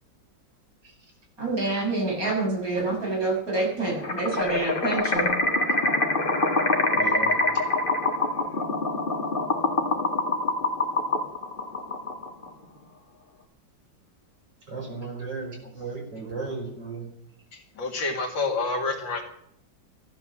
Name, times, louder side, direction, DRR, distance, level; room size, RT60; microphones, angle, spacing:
voice 1, 1.4-5.3, right 2 dB, 45° right, -3 dB, 7.2 m, -27 dB
sound 1, 4.0-12.5, left 2 dB, 30° left, 2.1 m, -25 dB
voice 2, 6.9-7.4 14.7-17.0, right 4 dB, 70° right, -1 dB, 6.3 m, -35 dB
voice 3, 17.5-19.2, left 3 dB, 80° left, 2 dB, 2.7 m, -28 dB
15.5 x 11.5 x 7.3 m, 0.71 s
omnidirectional pair, 2.0 m